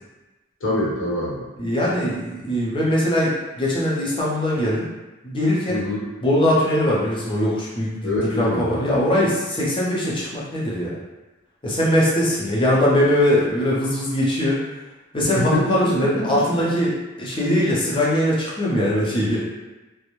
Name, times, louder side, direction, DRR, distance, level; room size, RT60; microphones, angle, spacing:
voice 1, 0.6-1.4 5.7-6.1 8.0-9.1 15.3-16.4, left 1 dB, 65° left, -6 dB, 0.9 m, -25 dB
voice 2, 1.6-4.9 5.2-5.8 6.2-8.1 8.4-11.0 11.6-14.6 15.1-19.5, left 1 dB, 25° left, -6 dB, 0.6 m, -21 dB
2.4 x 2.1 x 3.0 m, 1.1 s
head